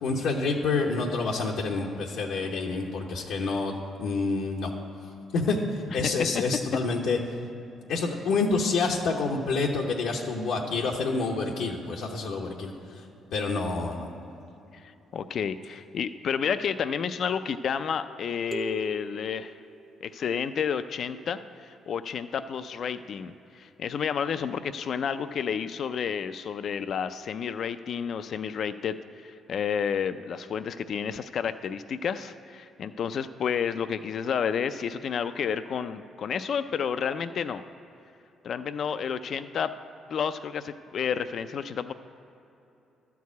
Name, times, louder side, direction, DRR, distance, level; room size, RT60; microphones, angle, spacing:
voice 1, 0.0-4.7 5.3-7.2 7.9-13.0 13.3-14.1, left 3 dB, 85° left, -1 dB, 0.9 m, -28 dB
voice 2, 14.7-19.6 20.0-37.6 38.4-39.7 40.1-41.9, left 7 dB, 60° left, 11 dB, 0.3 m, -30 dB
sound 1, 18.5-20.4, right 4 dB, 25° right, 0.6 m, -40 dB
12.0 x 4.7 x 8.2 m, 2.9 s
cardioid pair, 90°, 0 cm